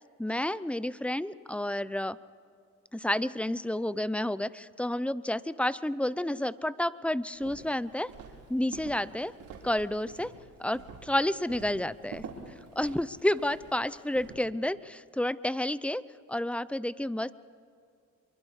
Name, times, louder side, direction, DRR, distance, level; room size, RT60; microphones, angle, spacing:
voice 1, 0.2-2.2 2.9-8.1 8.5-9.3 9.6-10.3 10.6-12.2 12.8-16.0 16.3-17.3, left 1 dB, 5° left, 17 dB, 0.6 m, -30 dB
Walk footsteps, 7.3-14.3, right 5 dB, 85° right, 4.5 m, -47 dB
25.5 x 23.5 x 4.9 m, 2.3 s
cardioid pair, 90°, 30 cm